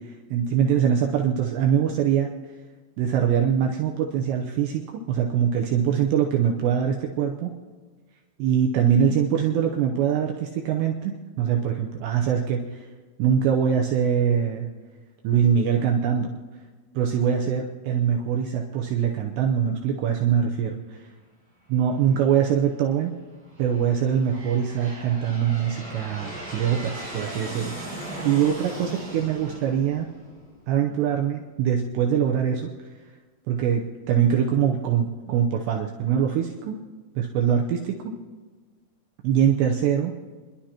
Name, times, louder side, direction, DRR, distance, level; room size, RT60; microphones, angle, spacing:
voice 1, 0.0-2.3 3.0-7.5 8.4-12.9 13.2-14.7 15.2-16.3 16.9-20.7 21.7-23.1 23.6-28.0 28.2-30.1 30.7-32.7 33.5-36.8 37.2-38.1 39.2-40.2, right 8 dB, 80° right, 1 dB, 2.7 m, -23 dB
Aircraft, 22.0-22.6 23.3-30.8, right 1 dB, ahead, 4.9 m, -38 dB
30.0 x 11.5 x 2.9 m, 1.4 s
omnidirectional pair, 5.6 m